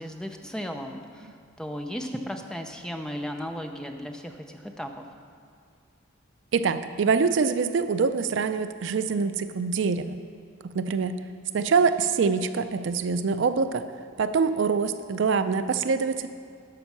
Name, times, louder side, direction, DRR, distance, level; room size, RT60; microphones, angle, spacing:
voice 1, 0.0-5.1, equal, 5° left, 4 dB, 0.5 m, -35 dB
voice 2, 6.5-10.2 10.7-11.2 11.5-13.9 14.2-16.3, right 5 dB, 65° right, 11 dB, 0.4 m, -24 dB
12.5 x 5.4 x 6.0 m, 2.2 s
head